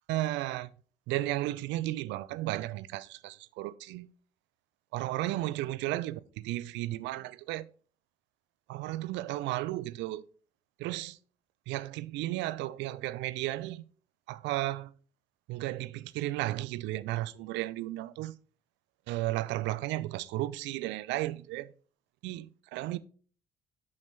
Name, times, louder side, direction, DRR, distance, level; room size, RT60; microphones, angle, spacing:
voice 1, 0.1-0.7 1.1-4.1 4.9-7.7 8.7-10.2 10.8-11.2 11.7-13.8 14.3-14.9 15.5-18.4 19.1-21.7 22.2-23.0, right 16 dB, 65° right, 0.5 m, -34 dB
8.6 x 6.4 x 3.4 m
hypercardioid pair, 45°, 20 cm